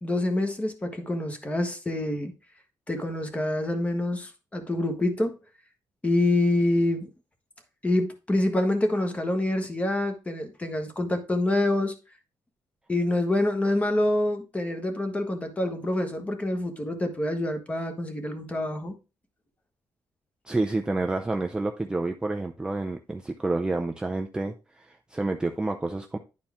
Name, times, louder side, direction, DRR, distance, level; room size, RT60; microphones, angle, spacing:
voice 1, 0.0-2.3 2.9-5.4 6.0-7.1 7.8-11.9 12.9-18.9, left 1 dB, 15° left, 1.3 m, -26 dB
voice 2, 20.5-26.2, right 2 dB, 10° right, 0.5 m, -29 dB
10.5 x 4.4 x 3.5 m
cardioid pair, 150°, 9 cm